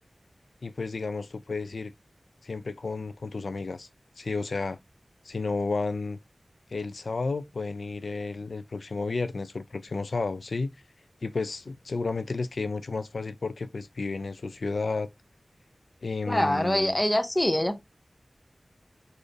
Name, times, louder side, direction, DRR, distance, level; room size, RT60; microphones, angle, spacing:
voice 1, 0.6-1.9 2.4-3.9 4.2-4.8 5.2-6.2 6.7-10.7 11.2-15.1 16.0-17.0, left 3 dB, 85° left, 0.3 m, -32 dB
voice 2, 16.3-17.8, left 1 dB, 15° left, 0.6 m, -24 dB
4.0 x 2.5 x 3.2 m
wide cardioid pair, 70°, 0 cm